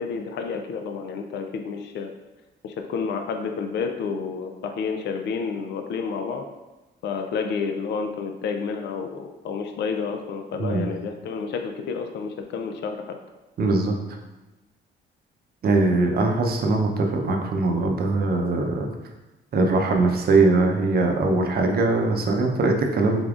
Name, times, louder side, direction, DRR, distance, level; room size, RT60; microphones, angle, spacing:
voice 1, 0.0-2.1 2.6-6.5 7.0-13.2, left 5 dB, 60° left, 5 dB, 0.4 m, -30 dB
voice 2, 13.6-14.0 15.6-18.9 19.5-23.2, right 3 dB, 50° right, 2 dB, 0.6 m, -21 dB
3.8 x 3.4 x 2.4 m, 1.1 s
cardioid pair, 90°, 20 cm